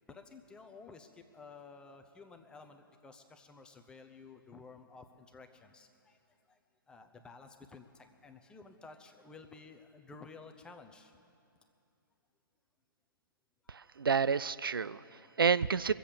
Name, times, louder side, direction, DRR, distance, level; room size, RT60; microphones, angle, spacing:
voice 1, 0.1-6.6 6.9-11.1 15.0-15.1, left 4 dB, 5° left, 6 dB, 0.7 m, -53 dB
voice 2, 13.7-15.9, right 6 dB, 75° right, 17 dB, 0.4 m, -30 dB
23.0 x 7.7 x 6.8 m, 2.6 s
figure-of-eight pair, 125°, 12 cm